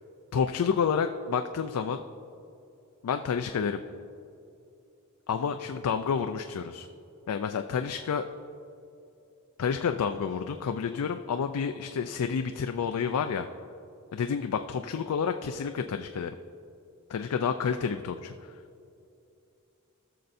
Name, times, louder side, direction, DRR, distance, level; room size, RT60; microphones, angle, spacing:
voice 1, 0.3-2.0 3.0-3.8 5.3-6.9 7.3-8.3 9.6-13.5 14.1-16.3 17.1-18.5, left 6 dB, 90° left, 7 dB, 0.4 m, -29 dB
17.5 x 6.7 x 2.6 m, 2.7 s
head